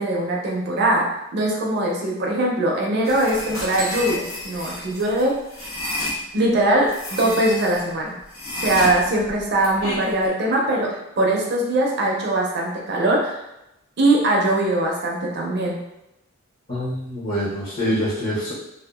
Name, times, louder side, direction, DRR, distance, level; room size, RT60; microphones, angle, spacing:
voice 1, 0.0-5.3 6.3-8.2 8.5-10.9 11.2-13.4 14.0-15.8, right 1 dB, 50° right, -1 dB, 0.5 m, -21 dB
sound 1, 3.1-6.2 6.9-7.8 8.3-10.3, left 1 dB, 75° left, 0.9 m, -30 dB
voice 2, 16.7-18.5, equal, 40° left, -7 dB, 0.8 m, -25 dB
2.6 x 2.2 x 2.3 m, 0.88 s
head